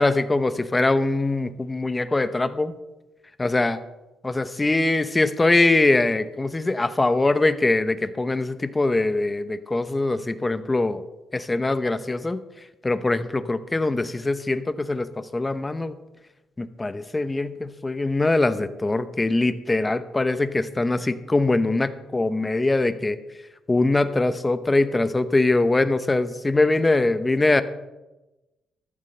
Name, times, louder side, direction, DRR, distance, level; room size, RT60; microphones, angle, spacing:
voice 1, 0.0-2.7 3.4-3.8 4.2-11.0 11.3-12.4 12.8-15.9 16.6-23.2 23.7-27.6, left 2 dB, 20° left, 12 dB, 0.8 m, -22 dB
13.5 x 12.5 x 3.3 m, 1.0 s
cardioid pair, 90°, 0 cm